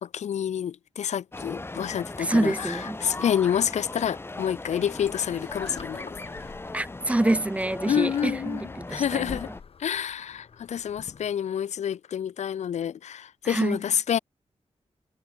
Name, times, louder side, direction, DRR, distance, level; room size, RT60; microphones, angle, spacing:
voice 1, 0.0-6.1 7.9-8.6 8.9-9.5 9.8-14.2, left 9 dB, 90° left, 0.5 m, -28 dB
sound 1, 1.3-9.6, left 2 dB, 20° left, 5.5 m, -38 dB
voice 2, 2.2-3.0 6.7-9.4 13.4-13.8, right 1 dB, 10° right, 0.5 m, -26 dB
sound 2, 5.0-11.4, left 6 dB, 55° left, 3.1 m, -48 dB
wide cardioid pair, 165°, 11 cm